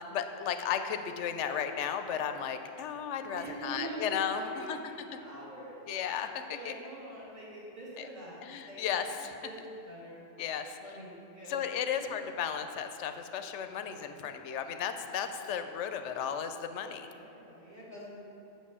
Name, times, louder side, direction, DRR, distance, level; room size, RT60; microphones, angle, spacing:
voice 1, 0.1-4.8 5.9-6.7 8.0-8.1 8.4-9.4 10.4-10.8 11.5-17.1, left 8 dB, 75° left, 8 dB, 0.9 m, -34 dB
voice 2, 3.3-5.9 6.5-10.1 10.8-11.6 13.7-14.0 15.1-15.2 17.1-18.1, right 1 dB, 35° right, -7 dB, 2.5 m, -45 dB
7.4 x 6.1 x 6.8 m, 3.0 s
omnidirectional pair, 1.3 m